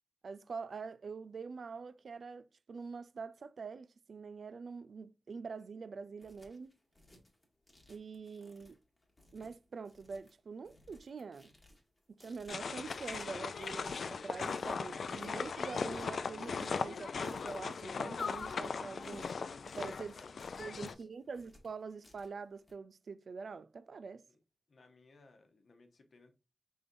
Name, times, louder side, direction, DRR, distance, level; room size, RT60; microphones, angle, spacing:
voice 1, 0.2-6.7 7.9-8.8 9.3-11.5 12.1-19.3 19.7-20.2 20.6-24.2, right 5 dB, 70° right, 0.3 m, -45 dB
sound 1, 6.0-22.7, left 1 dB, 15° left, 1.3 m, -64 dB
sound 2, 12.5-20.9, left 5 dB, 75° left, 0.3 m, -38 dB
voice 2, 20.0-20.5 20.8-21.4 24.3-24.4 24.7-26.3, left 3 dB, 60° left, 1.0 m, -62 dB
5.1 x 3.5 x 2.5 m
wide cardioid pair, 140°, 0 cm